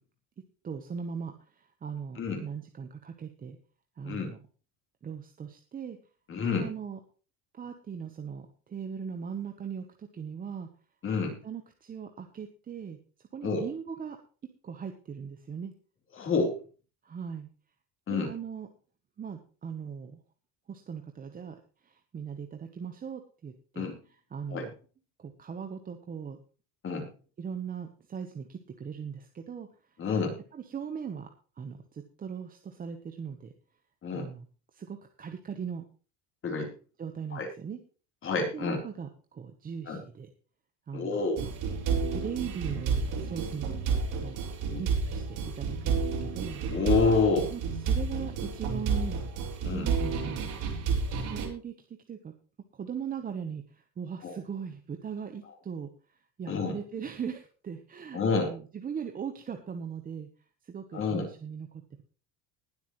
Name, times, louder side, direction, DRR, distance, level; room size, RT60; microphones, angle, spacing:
voice 1, 0.6-3.6 4.0-4.4 5.0-6.0 6.5-7.0 7.5-10.7 11.4-13.0 13.3-14.2 14.6-15.7 17.0-17.5 18.1-18.7 19.2-20.2 20.7-21.6 21.8-24.7 25.2-26.4 27.4-29.7 30.5-31.3 31.6-33.5 34.1-34.5 34.7-35.8 37.0-37.8 38.5-40.3 40.9-41.5 42.0-43.7 44.2-44.4 44.7-46.6 47.5-47.6 47.9-49.2 49.7-50.4 51.1-51.7 52.1-52.3 52.7-60.3 60.6-62.0, right 7 dB, 20° right, 5 dB, 1.0 m, -39 dB
voice 2, 6.3-6.7 11.0-11.3 13.4-13.6 16.2-16.6 18.1-18.3 23.8-24.0 24.5-24.6 26.8-27.1 30.0-30.4 34.0-34.3 36.4-36.7 37.3-37.5 38.2-38.8 39.9-40.0 40.9-41.4 44.7-44.8 46.7-47.5 49.6-49.9 54.2-54.3 56.5-56.8 58.1-58.5 60.9-61.3, left 4 dB, 30° left, 3 dB, 3.8 m, -28 dB
sound 1, 41.4-51.5, right 5 dB, 50° right, 4.1 m, -30 dB
20.0 x 8.3 x 3.1 m, 0.37 s
cardioid pair, 165°, 41 cm